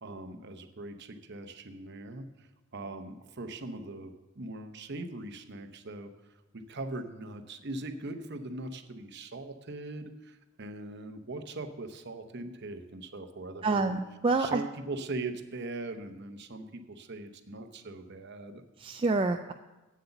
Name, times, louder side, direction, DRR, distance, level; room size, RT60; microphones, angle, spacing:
voice 1, 0.0-6.1 6.5-13.9 14.4-18.6, right 2 dB, 50° right, 8 dB, 0.8 m, -40 dB
voice 2, 13.6-14.6 18.8-19.5, right 3 dB, 25° right, 5 dB, 0.3 m, -27 dB
8.4 x 7.8 x 7.0 m, 1.1 s
head